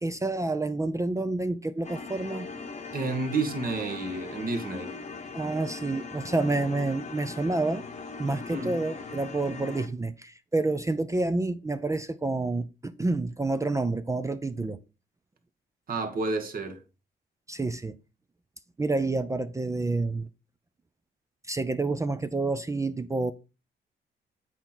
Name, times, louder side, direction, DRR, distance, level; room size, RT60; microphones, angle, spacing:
voice 1, 0.0-2.5 5.3-7.8 8.2-14.8 17.5-17.9 18.8-20.3 21.5-23.3, right 2 dB, 15° right, 0.5 m, -28 dB
sound 1, 1.8-9.9, left 4 dB, 35° left, 0.9 m, -40 dB
voice 2, 2.9-4.9 8.5-8.8 15.9-16.8, right 3 dB, 45° right, 1.5 m, -30 dB
8.2 x 4.4 x 3.9 m
cardioid pair, 90°, 20 cm